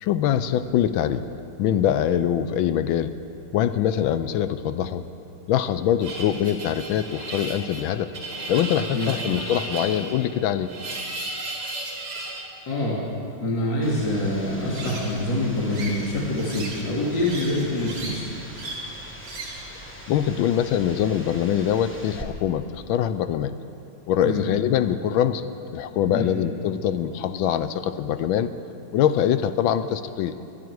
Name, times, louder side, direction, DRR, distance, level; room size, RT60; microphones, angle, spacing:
voice 1, 0.0-1.3 1.6-3.2 3.5-5.0 5.5-8.2 8.5-10.7 20.1-23.5 24.1-28.5 28.9-30.4, left 10 dB, 75° left, 12 dB, 1.3 m, -23 dB
sound 1, 6.0-12.5 14.6-15.2 15.7-16.9 17.1-18.2 18.5-18.9 19.2-19.7, right 2 dB, 50° right, 2.2 m, -35 dB
voice 2, 12.7-13.0 13.4-18.2 24.2-24.4 26.0-26.2, left 1 dB, 55° left, -5 dB, 2.7 m, -25 dB
sound 2, 13.8-22.2, equal, 10° left, 0.8 m, -42 dB
19.5 x 11.5 x 4.7 m, 2.7 s
omnidirectional pair, 2.4 m